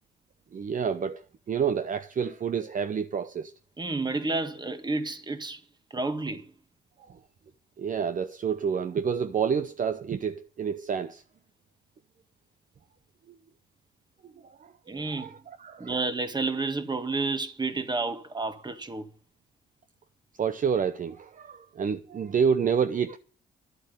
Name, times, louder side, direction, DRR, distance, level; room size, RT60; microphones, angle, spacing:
voice 1, 0.5-3.5 7.1-7.2 7.8-11.2 14.4-16.0 20.4-23.2, right 7 dB, 40° right, 0.8 m, -29 dB
voice 2, 3.8-5.6 5.9-6.4 14.9-15.3 15.8-19.1, right 3 dB, 20° right, 1.8 m, -30 dB
11.5 x 8.0 x 9.7 m
cardioid pair, 90°, 20 cm